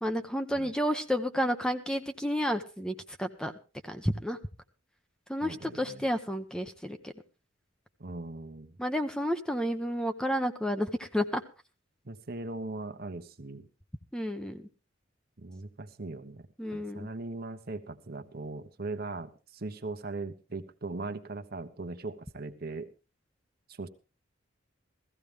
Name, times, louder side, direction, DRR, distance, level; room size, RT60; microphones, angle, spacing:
voice 1, 0.0-3.5 3.8-4.4 5.3-7.1 8.8-11.4 14.1-14.7 16.6-17.1, equal, 5° left, 7 dB, 0.8 m, -31 dB
voice 2, 5.4-6.1 8.0-8.8 12.0-13.7 15.4-22.9 23.7-23.9, right 2 dB, 50° right, 8 dB, 1.1 m, -39 dB
16.5 x 15.0 x 3.4 m, 0.31 s
head